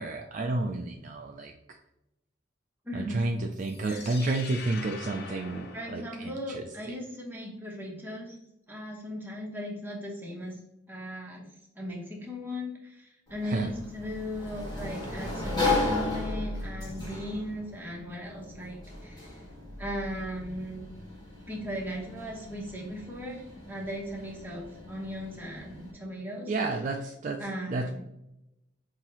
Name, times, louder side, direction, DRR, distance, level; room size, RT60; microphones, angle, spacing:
voice 1, 0.0-1.5 2.9-6.3 6.5-6.6 13.5-13.7 26.5-27.4 27.7-28.0, right 2 dB, 40° right, 3 dB, 0.3 m, -30 dB
voice 2, 2.8-3.3 3.8-4.1 5.7-8.4 8.7-10.6 10.9-11.5 11.8-19.3 19.8-20.9 21.5-26.5 27.4-28.0, equal, 10° right, -3 dB, 0.9 m, -37 dB
sound 1, 3.5-6.7, left 4 dB, 55° left, 0.6 m, -44 dB
Sliding door, 13.3-25.9, left 2 dB, 25° left, 1.4 m, -36 dB
5.5 x 2.7 x 3.0 m, 0.87 s
head